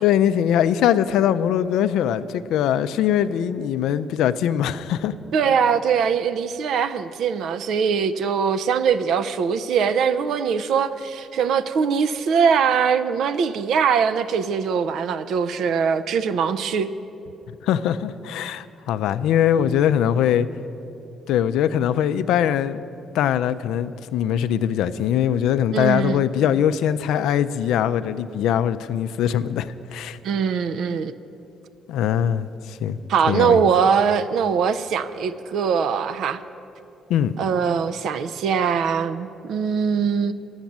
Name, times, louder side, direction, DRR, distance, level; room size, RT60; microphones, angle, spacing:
voice 1, 0.0-5.1 17.5-20.5 21.3-22.8 23.1-30.2 31.9-33.0 33.3-33.7 37.1-37.3, left 10 dB, 90° left, 12 dB, 0.3 m, -22 dB
voice 2, 5.3-16.9 25.7-26.3 30.2-31.1 33.1-36.4 37.4-40.3, right 6 dB, 75° right, 13 dB, 0.4 m, -22 dB
10.5 x 8.0 x 7.3 m, 2.9 s
cardioid pair, 90°, 0 cm